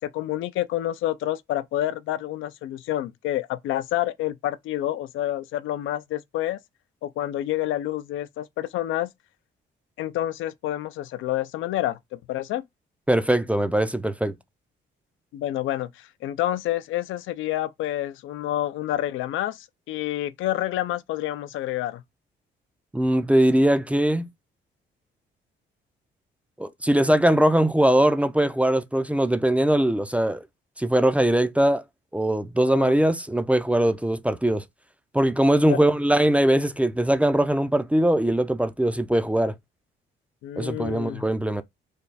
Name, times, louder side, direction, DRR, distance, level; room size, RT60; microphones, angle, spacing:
voice 1, 0.0-6.6 7.0-9.1 10.0-12.6 15.3-22.0 32.6-33.0 35.7-35.9 40.4-41.2, left 13 dB, 80° left, 0.4 m, -28 dB
voice 2, 13.1-14.4 22.9-24.3 26.6-30.4 30.8-31.8 32.1-34.6 35.1-39.5 40.6-41.6, right 1 dB, 5° right, 0.4 m, -21 dB
3.3 x 2.2 x 3.9 m
cardioid pair, 90°, 20 cm